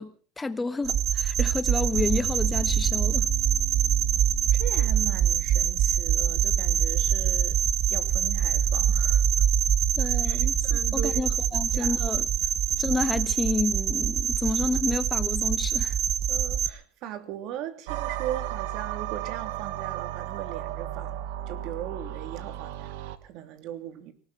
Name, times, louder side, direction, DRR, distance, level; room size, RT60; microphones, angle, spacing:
voice 1, 0.0-3.3 10.0-12.3 12.8-16.0, left 3 dB, 10° left, 1.3 m, -30 dB
sound 1, 0.8-16.7, right 9 dB, 45° right, 1.0 m, -24 dB
sound 2, 1.9-14.4, left 14 dB, 50° left, 2.0 m, -46 dB
voice 2, 4.5-7.6 7.9-9.3 10.2-11.2 11.5-12.0 16.3-24.1, right 11 dB, 60° right, 2.9 m, -39 dB
sound 3, 17.9-23.2, right 12 dB, 80° right, 1.5 m, -34 dB
19.0 x 18.0 x 4.2 m
supercardioid pair, 135°, 0 cm